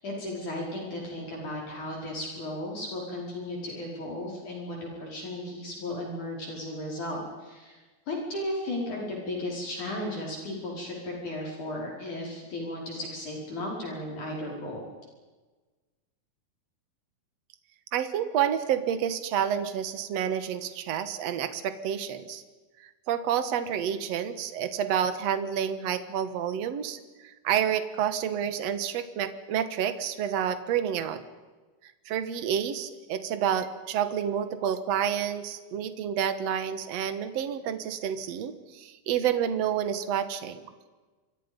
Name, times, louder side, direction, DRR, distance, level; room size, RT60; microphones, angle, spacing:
voice 1, 0.0-7.8 8.1-14.8, left 1 dB, 55° left, -2 dB, 6.5 m, -35 dB
voice 2, 17.9-22.4 23.1-31.2 32.1-40.6, right 9 dB, 55° right, 10 dB, 2.2 m, -29 dB
28.0 x 24.0 x 5.4 m, 1.3 s
omnidirectional pair, 4.3 m